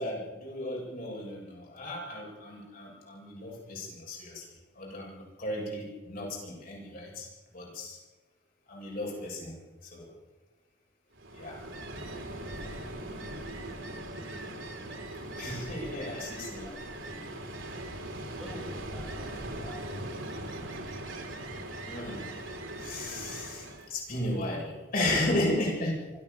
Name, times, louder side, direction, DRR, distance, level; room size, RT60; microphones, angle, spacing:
voice 1, 0.0-4.5 4.8-7.3 7.5-8.0 8.7-9.6 9.8-10.1 11.3-11.6 15.4-16.7 21.9-22.3 22.8-26.0, left 1 dB, 45° left, -3 dB, 7.6 m, -34 dB
Ocean, 11.1-23.9, right 1 dB, 80° right, 3.6 m, -40 dB
voice 2, 13.0-14.6 15.2-15.4 16.6-17.3 18.3-20.7, left 1 dB, ahead, -5 dB, 7.1 m, -50 dB
25.0 x 16.0 x 7.1 m, 1.2 s
head